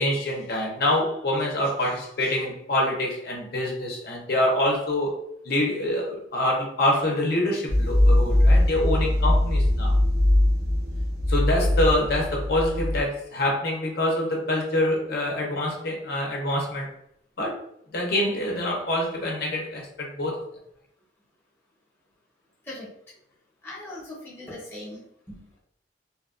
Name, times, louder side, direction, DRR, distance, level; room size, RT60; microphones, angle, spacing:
voice 1, 0.0-5.1 5.4-10.0 11.3-16.9 17.4-17.6 17.9-20.4, left 1 dB, 60° left, -1 dB, 0.6 m, -25 dB
sound 1, 7.7-13.0, left 1 dB, 55° right, 0.6 m, -21 dB
voice 2, 23.6-25.6, left 1 dB, 15° left, -6 dB, 0.7 m, -40 dB
2.8 x 2.2 x 2.4 m, 0.71 s
head